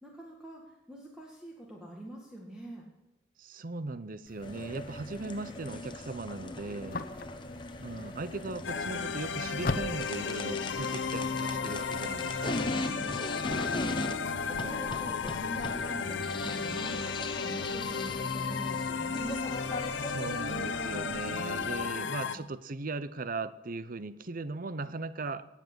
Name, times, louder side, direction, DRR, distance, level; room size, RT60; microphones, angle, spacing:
voice 1, 0.0-2.9 6.6-7.3 12.8-14.1 14.4-19.4 21.9-22.4, right 1 dB, 5° right, -2 dB, 2.0 m, -45 dB
voice 2, 3.4-7.0 7.8-12.6 20.0-25.5, right 3 dB, 50° right, 14 dB, 0.8 m, -38 dB
sound 1, 4.3-12.8, left 3 dB, 50° left, 0.9 m, -43 dB
sound 2, 4.4-21.9, left 2 dB, 25° left, 1.1 m, -39 dB
sound 3, 8.6-22.4, left 5 dB, 85° left, 0.8 m, -34 dB
18.5 x 7.5 x 8.1 m, 0.93 s
head